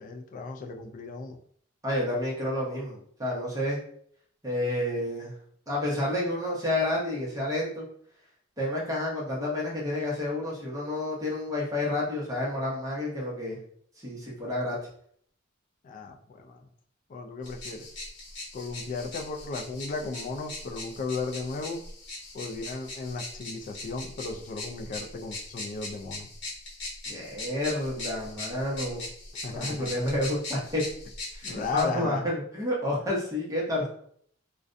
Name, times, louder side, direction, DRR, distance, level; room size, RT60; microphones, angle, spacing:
voice 1, 0.0-1.4 15.8-16.7 17.1-17.9 18.5-21.8 22.3-26.3 29.4-30.2 31.4-32.3, left 4 dB, 40° left, 4 dB, 0.3 m, -35 dB
voice 2, 1.8-3.8 4.4-5.3 5.7-7.9 8.6-13.6 14.0-14.8 27.1-29.1 29.5-30.8 31.3-33.9, left 1 dB, 15° right, -5 dB, 0.8 m, -30 dB
sound 1, 17.4-31.8, left 2 dB, 60° left, 0.9 m, -40 dB
2.4 x 2.2 x 2.5 m, 0.62 s
head